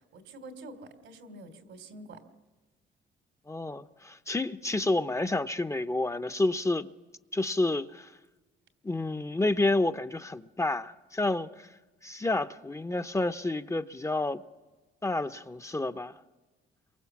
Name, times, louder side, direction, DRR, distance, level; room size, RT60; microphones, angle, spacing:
voice 1, 0.0-2.2, right 2 dB, 85° right, 3.1 m, -47 dB
voice 2, 3.5-6.9 7.3-8.1 8.8-11.7 12.0-14.4 15.0-16.1, left 2 dB, 15° left, 0.8 m, -29 dB
28.0 x 23.5 x 7.2 m
cardioid pair, 90°, 20 cm